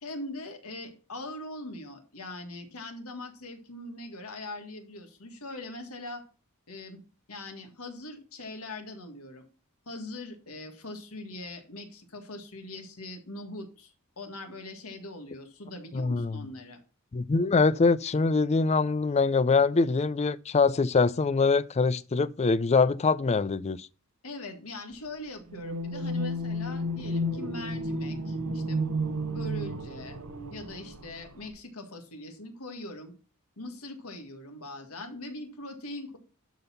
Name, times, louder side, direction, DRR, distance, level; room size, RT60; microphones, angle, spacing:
voice 1, 0.0-6.2 6.7-7.0 7.3-9.5 9.9-16.8 24.2-28.8 29.2-30.2 30.5-33.1 33.6-36.2, left 2 dB, 85° left, 1.8 m, -41 dB
voice 2, 15.9-16.3 17.1-23.9, left 4 dB, 30° left, 0.4 m, -24 dB
sound 1, 25.5-31.5, equal, 90° right, 1.1 m, -32 dB
12.0 x 4.1 x 5.6 m
head